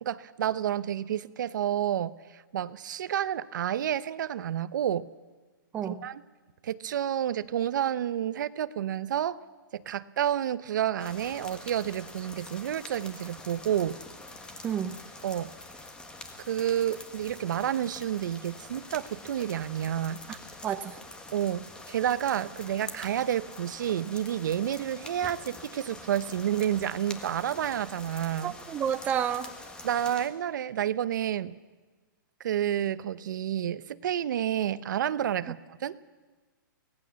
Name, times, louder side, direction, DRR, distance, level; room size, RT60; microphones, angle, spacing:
voice 1, 0.0-5.1 5.8-6.2 6.6-9.4 9.7-14.0 15.2-15.5 16.5-20.2 21.3-28.5 29.8-31.5 32.4-36.0, right 10 dB, 60° right, 15 dB, 0.9 m, -30 dB
voice 2, 5.7-6.0 14.6-15.0 20.3-20.4 20.6-21.0 28.4-29.5, right 8 dB, 15° right, 9 dB, 0.6 m, -30 dB
sound 1, 11.0-30.3, left 2 dB, 10° left, 1.5 m, -45 dB
24.0 x 18.5 x 7.1 m, 1.3 s
hypercardioid pair, 155°, 11 cm